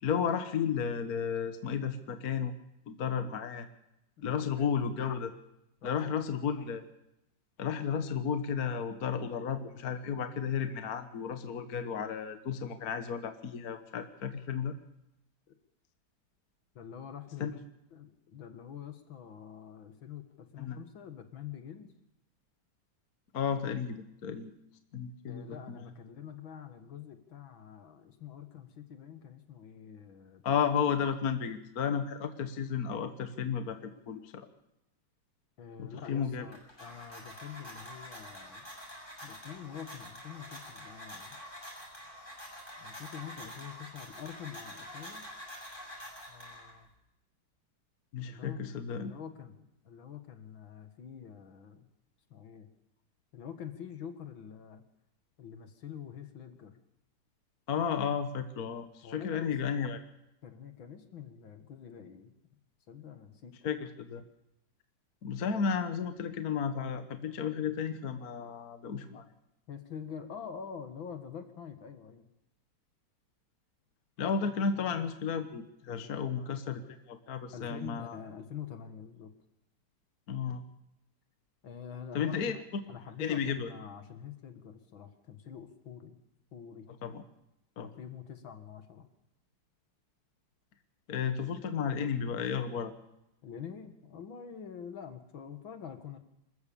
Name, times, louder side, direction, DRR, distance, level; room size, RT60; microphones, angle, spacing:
voice 1, 0.0-2.5 2.9-3.7 4.2-5.3 5.8-6.8 7.6-14.8 17.4-17.6 20.6-20.8 23.3-24.5 24.9-25.9 30.4-34.5 35.8-36.4 48.1-49.1 57.7-60.0 63.6-64.2 65.2-69.2 74.2-76.8 77.1-78.2 80.3-80.6 82.1-82.8 83.2-83.7 87.0-87.2 87.8-87.9 91.1-92.9, left 7 dB, 50° left, 9 dB, 1.5 m, -33 dB
voice 2, 4.2-4.7 5.8-6.2 15.5-15.6 16.8-17.6 17.9-21.9 25.2-30.5 35.6-38.7 39.2-41.4 42.8-45.3 46.3-46.9 48.3-48.7 48.9-51.9 52.3-52.7 53.3-54.8 55.4-56.8 59.0-59.5 60.4-62.3 62.9-63.5 65.5-65.6 69.7-72.3 76.0-76.6 77.5-79.3 81.6-82.6 82.9-86.2 86.5-86.9 87.9-89.1 93.4-96.2, left 8 dB, 65° left, 8 dB, 2.4 m, -46 dB
sound 1, 36.3-46.9, equal, 20° left, 7.1 m, -47 dB
26.0 x 14.5 x 7.0 m, 0.88 s
omnidirectional pair, 2.3 m